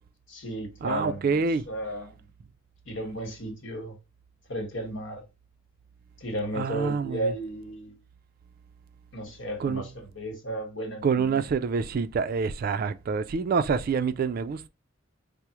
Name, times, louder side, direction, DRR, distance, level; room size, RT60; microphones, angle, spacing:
voice 1, 0.3-2.2 2.9-4.0 4.5-5.2 6.2-7.9 9.1-11.4, right 1 dB, 70° left, 1.2 m, -34 dB
voice 2, 0.8-1.7 6.5-7.3 9.6-9.9 11.0-14.7, right 5 dB, 50° right, 0.3 m, -27 dB
4.7 x 2.0 x 2.8 m
head